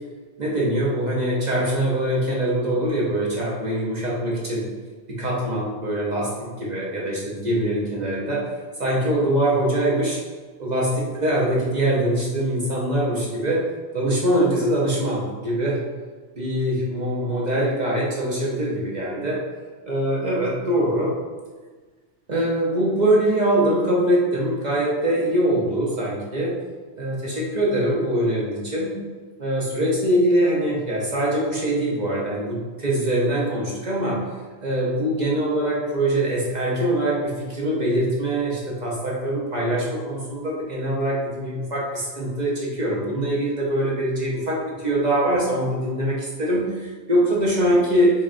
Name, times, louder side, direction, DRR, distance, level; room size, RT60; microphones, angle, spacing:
voice 1, 0.4-4.7 5.1-6.3 6.6-8.4 8.8-10.2 10.6-13.6 13.9-15.8 16.4-19.4 19.9-21.1 22.3-26.5 27.0-29.0 29.4-34.2 34.6-48.1, right 1 dB, 45° right, -4 dB, 0.7 m, -23 dB
5.4 x 2.3 x 2.4 m, 1.4 s
omnidirectional pair, 1.3 m